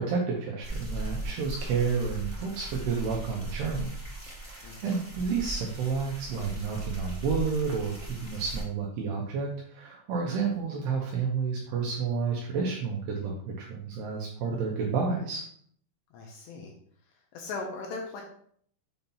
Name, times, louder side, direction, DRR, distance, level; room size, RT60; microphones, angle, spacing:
voice 1, 0.0-3.9 4.3-15.4, right 5 dB, 80° right, -1 dB, 2.4 m, -30 dB
sound 1, 0.6-8.6, right 2 dB, 5° left, 1.0 m, -38 dB
voice 2, 4.6-5.0 16.1-16.7 17.3-18.2, left 3 dB, 75° left, 0 dB, 2.7 m, -38 dB
7.9 x 2.8 x 5.4 m, 0.62 s
omnidirectional pair, 5.7 m